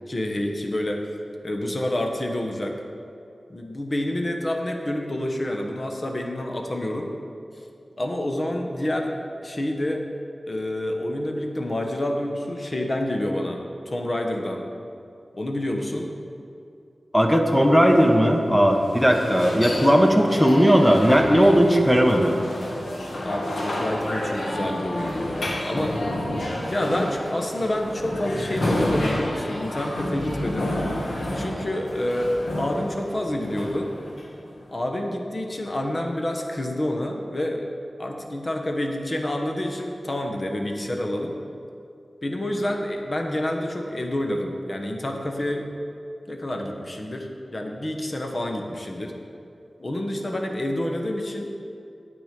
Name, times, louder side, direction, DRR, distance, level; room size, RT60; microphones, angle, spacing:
voice 1, 0.1-1.1 1.4-2.8 3.5-7.1 7.6-7.7 8.0-9.1 9.4-10.1 10.4-14.7 15.3-16.1 23.2-26.0 26.7-30.7 31.3-33.9 34.7-37.7 38.0-41.4 42.2-45.7 46.3-49.2 49.8-51.5, left 1 dB, 40° left, 2 dB, 1.3 m, -28 dB
voice 2, 17.1-22.4, equal, ahead, 2 dB, 1.0 m, -17 dB
sound 1, 17.6-34.6, left 1 dB, 80° left, 1.7 m, -30 dB
9.4 x 8.4 x 5.2 m, 2.6 s
wide cardioid pair, 60°, 0 cm